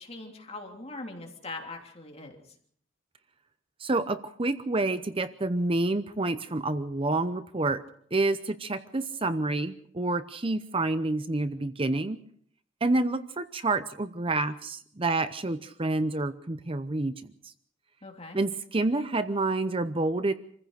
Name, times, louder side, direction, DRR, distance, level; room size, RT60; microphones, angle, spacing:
voice 1, 0.0-2.4 18.0-18.4, left 2 dB, 30° left, 2 dB, 3.2 m, -41 dB
voice 2, 3.8-7.8 8.1-12.2 12.8-17.5 18.3-20.3, right 2 dB, 30° right, 12 dB, 0.7 m, -28 dB
27.0 x 15.5 x 6.5 m, 0.63 s
head